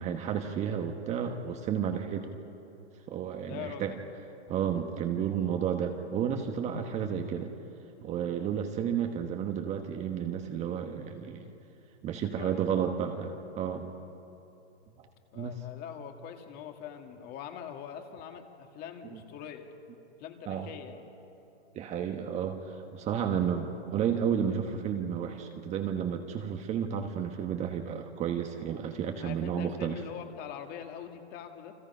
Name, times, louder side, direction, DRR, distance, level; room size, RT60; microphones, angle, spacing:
voice 1, 0.0-2.3 3.1-3.9 4.5-7.5 8.0-11.5 12.0-13.9 15.3-15.5 19.1-19.2 20.5-20.7 21.7-30.0, right 8 dB, 20° right, 5 dB, 1.2 m, -32 dB
voice 2, 3.5-3.8 12.2-13.0 15.3-19.7 20.2-21.1 29.2-31.7, left 9 dB, 30° left, 5 dB, 2.1 m, -43 dB
29.0 x 24.5 x 5.6 m, 2.8 s
hypercardioid pair, 145°, 34 cm